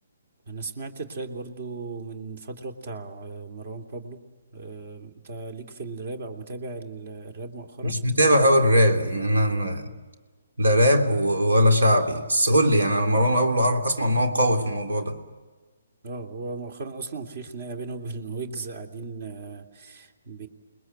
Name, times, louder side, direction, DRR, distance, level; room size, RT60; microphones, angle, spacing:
voice 1, 0.5-4.2 4.5-8.0 16.0-20.5, right 3 dB, 50° right, 5 dB, 3.0 m, -36 dB
voice 2, 7.8-9.9 10.6-15.2, equal, 80° right, 5 dB, 3.2 m, -20 dB
29.0 x 21.0 x 8.0 m, 1.3 s
figure-of-eight pair, 140°, 0 cm